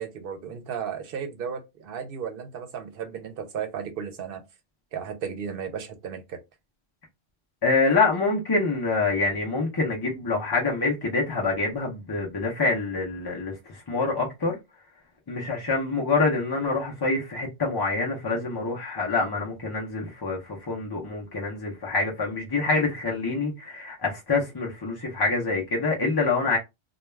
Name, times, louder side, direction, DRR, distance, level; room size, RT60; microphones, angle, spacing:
voice 1, 0.0-4.4 4.9-6.4, right 7 dB, 65° right, 0.8 m, -34 dB
voice 2, 7.6-14.6 15.3-26.6, left 3 dB, 35° left, 0.4 m, -26 dB
2.2 x 2.2 x 3.1 m
omnidirectional pair, 1.1 m